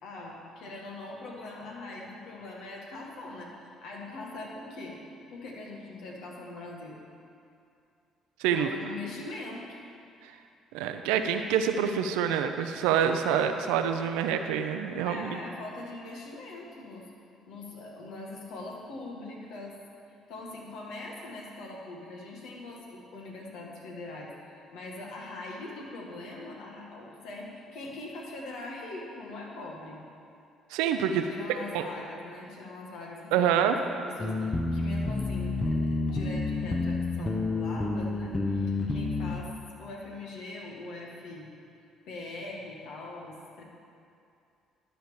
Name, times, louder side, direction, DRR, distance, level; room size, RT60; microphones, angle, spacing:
voice 1, 0.0-5.0 5.3-7.0 8.5-9.8 15.0-17.1 17.5-19.8 20.3-30.0 31.2-41.5 42.1-43.6, left 2 dB, 70° left, -1 dB, 1.8 m, -42 dB
voice 2, 8.4-8.7 10.7-15.4 30.7-31.3 31.7-31.8 33.3-33.8, right 8 dB, 80° right, 7 dB, 0.6 m, -26 dB
sound 1, 34.2-39.4, left 3 dB, 25° left, 0.8 m, -29 dB
12.0 x 4.5 x 7.0 m, 2.5 s
hypercardioid pair, 55°, 0 cm